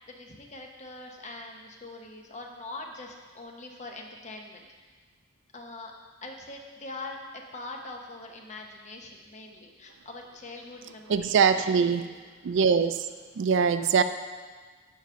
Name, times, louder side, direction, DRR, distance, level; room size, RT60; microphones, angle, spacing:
voice 1, 0.1-4.7 5.5-5.9 6.2-12.1, left 2 dB, 35° left, 2 dB, 0.8 m, -43 dB
voice 2, 11.1-12.0 12.4-13.1 13.4-14.0, right 6 dB, 60° right, 11 dB, 0.3 m, -22 dB
7.4 x 5.0 x 5.6 m, 1.5 s
head